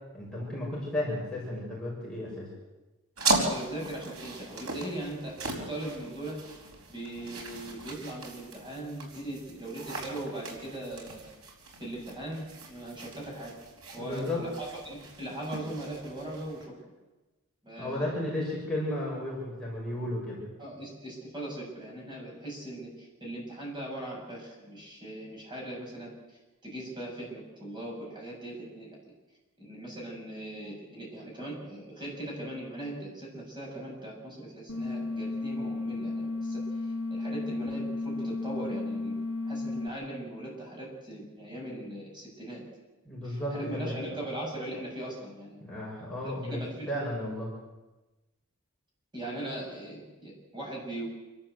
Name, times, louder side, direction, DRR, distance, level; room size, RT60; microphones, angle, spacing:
voice 1, 0.1-2.5 14.0-14.4 17.8-20.4 43.0-44.1 45.6-47.5, left 1 dB, 5° left, -6 dB, 6.3 m, -34 dB
sound 1, 3.2-16.6, right 3 dB, 75° right, 5.0 m, -37 dB
voice 2, 3.3-5.4 5.7-6.4 6.9-11.3 11.8-13.5 13.9-16.7 17.6-18.1 20.6-26.1 26.6-29.1 29.6-36.6 37.1-39.2 39.4-42.6 43.2-45.6 46.2-47.1 49.1-51.1, right 1 dB, 20° right, -3 dB, 7.5 m, -39 dB
sound 2, 34.7-39.9, left 2 dB, 75° left, 3.0 m, -33 dB
28.0 x 13.0 x 8.1 m, 1.1 s
head